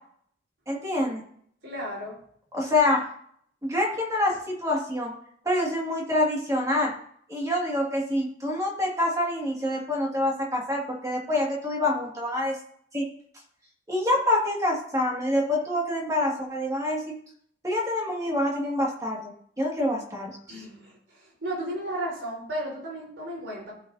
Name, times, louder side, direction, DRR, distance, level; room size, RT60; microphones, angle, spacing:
voice 1, 0.7-1.2 2.5-3.0 3.6-5.1 5.5-6.9 7.3-12.6 12.9-13.1 13.9-17.1 17.6-19.3 19.6-20.6, left 1 dB, 15° right, -2 dB, 2.0 m, -26 dB
voice 2, 1.6-2.2 20.5-23.7, right 1 dB, 80° right, -3 dB, 3.9 m, -34 dB
15.0 x 6.3 x 2.7 m, 0.64 s
head